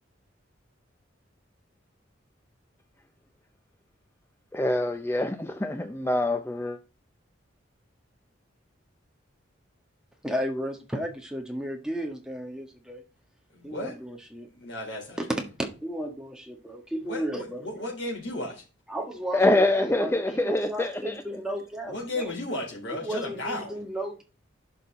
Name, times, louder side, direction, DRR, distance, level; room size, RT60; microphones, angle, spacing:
voice 1, 4.5-6.8 19.3-21.2, left 2 dB, 10° left, 0.5 m, -25 dB
voice 2, 10.2-13.0 13.6-14.5 15.2-15.3 15.6-17.6 18.9-22.3 23.0-24.2, equal, 5° right, 1.6 m, -34 dB
voice 3, 13.5-14.0 14.4-15.2 17.0-18.6 21.8-23.8, left 1 dB, 70° left, 4.1 m, -34 dB
11.0 x 5.5 x 4.0 m
head